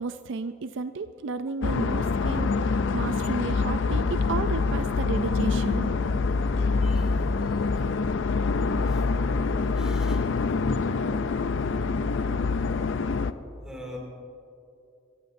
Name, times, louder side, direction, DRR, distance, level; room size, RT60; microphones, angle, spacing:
voice 1, 0.0-5.9, right 4 dB, 60° right, 11 dB, 0.4 m, -33 dB
sound 1, 1.6-13.3, left 4 dB, 65° left, 0.5 m, -25 dB
voice 2, 9.7-10.2 13.6-14.0, equal, 5° right, -1 dB, 2.5 m, -43 dB
26.0 x 14.5 x 2.7 m, 2.6 s
head